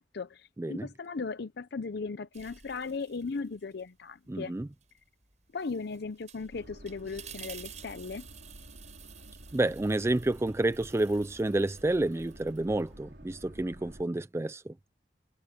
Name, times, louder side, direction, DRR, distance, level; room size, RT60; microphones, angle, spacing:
voice 1, 0.0-4.5 5.5-8.3, left 4 dB, 60° left, 0.6 m, -37 dB
sound 1, 2.3-3.9 4.3-12.9, right 9 dB, 40° right, 5.9 m, -52 dB
voice 2, 4.3-4.7 9.5-14.7, right 2 dB, 15° right, 0.3 m, -29 dB
Boat Water vehicle, 6.5-14.0, right 1 dB, 65° right, 3.8 m, -51 dB
head